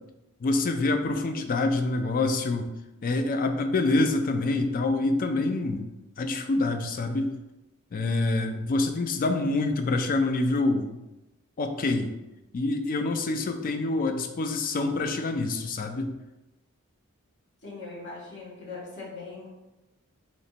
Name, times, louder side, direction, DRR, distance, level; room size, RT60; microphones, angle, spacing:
voice 1, 0.4-2.7 3.0-5.9 6.2-7.4 7.9-11.0 11.6-12.1 12.5-16.1, left 2 dB, 40° left, 7 dB, 0.4 m, -26 dB
voice 2, 17.6-19.5, left 3 dB, 60° left, -5 dB, 1.2 m, -40 dB
3.2 x 2.9 x 4.2 m, 1.0 s
head